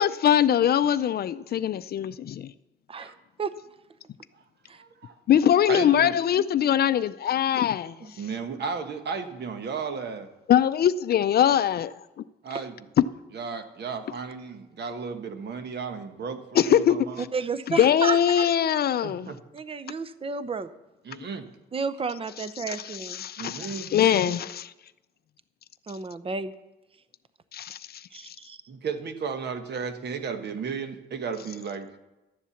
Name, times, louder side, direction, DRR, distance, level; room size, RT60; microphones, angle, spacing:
voice 1, 0.0-2.5 5.3-8.0 10.5-12.0 13.0-13.1 16.5-17.3 17.7-19.3 22.4-24.7 27.5-28.4, left 10 dB, 50° left, 15 dB, 0.4 m, -22 dB
voice 2, 4.7-5.2 5.7-6.2 8.2-10.3 12.4-12.9 13.3-17.2 19.0-19.4 21.0-21.5 23.4-23.9 28.7-32.0, right 5 dB, 55° right, 8 dB, 1.3 m, -34 dB
voice 3, 17.3-18.4 19.5-20.7 21.7-23.2 25.9-26.5 28.1-28.6, right 4 dB, 30° right, 13 dB, 0.7 m, -32 dB
12.0 x 7.3 x 7.1 m, 1.0 s
cardioid pair, 90°, 20 cm